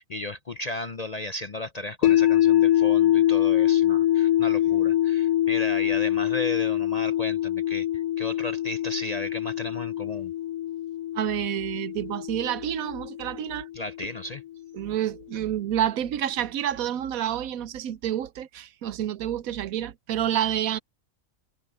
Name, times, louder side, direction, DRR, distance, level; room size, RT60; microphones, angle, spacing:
voice 1, 0.0-10.3 13.7-14.4, left 2 dB, 45° left, 0.5 m, -35 dB
sound 1, 2.0-14.1, left 12 dB, 80° left, 1.0 m, -24 dB
voice 2, 11.1-13.7 14.7-20.8, right 11 dB, 80° right, 1.1 m, -28 dB
omnidirectional pair, 1.5 m